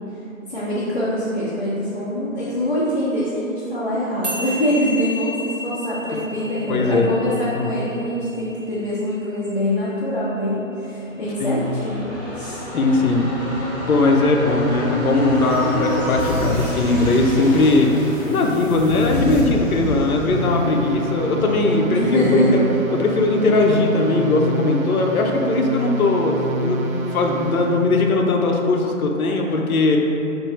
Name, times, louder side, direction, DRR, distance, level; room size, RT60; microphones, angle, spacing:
voice 1, 0.5-12.1 12.3-12.6 21.9-22.6, equal, 40° left, -11 dB, 0.5 m, -24 dB
sound 1, 4.2-10.8, equal, 30° right, 0.7 m, -34 dB
voice 2, 6.7-7.1 7.5-7.7 11.4-11.6 12.7-13.6 13.9-17.9 18.2-22.6 22.9-26.9 27.1-30.0, left 2 dB, 85° left, 2 dB, 0.7 m, -19 dB
sound 2, 11.1-24.6 24.9-25.0, right 1 dB, 15° left, 0.8 m, -29 dB
sound 3, 20.3-27.9, right 1 dB, 75° right, 0.6 m, -27 dB
4.8 x 2.6 x 3.1 m, 2.9 s
hypercardioid pair, 180°, 42 cm